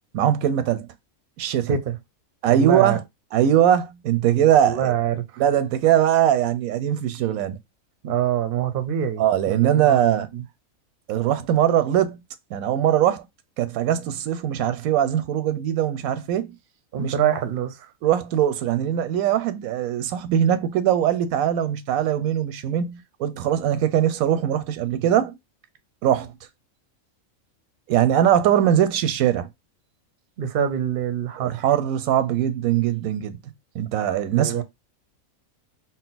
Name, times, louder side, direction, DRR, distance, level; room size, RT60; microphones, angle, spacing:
voice 1, 0.1-0.9 1.4-1.7 2.4-3.0 3.3-4.9 5.4-7.6 9.2-10.3 11.1-12.2 12.5-13.3 13.6-16.5 17.0-17.1 18.0-25.3 26.0-26.3 27.9-29.5 31.4-33.4 33.7-34.6, right 10 dB, 90° right, 1.0 m, -21 dB
voice 2, 2.5-3.0 4.6-5.4 8.0-10.0 10.3-10.4 16.9-17.9 30.4-31.7 34.4-34.6, right 9 dB, 55° right, 0.7 m, -25 dB
4.0 x 2.1 x 3.9 m
omnidirectional pair, 1.4 m